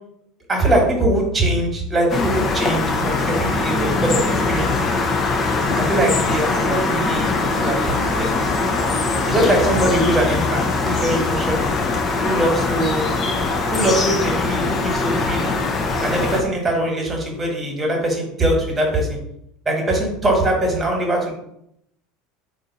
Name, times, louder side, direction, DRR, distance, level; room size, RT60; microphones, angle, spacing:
voice 1, 0.5-4.7 5.7-8.6 9.3-11.7 12.2-13.1 13.7-15.5 16.0-19.2 19.6-21.3, right 1 dB, 20° right, 1 dB, 1.5 m, -22 dB
sound 1, 2.1-16.4, left 3 dB, 35° left, 0.8 m, -21 dB
3.7 x 2.7 x 4.1 m, 0.76 s
hypercardioid pair, 80°, 0 cm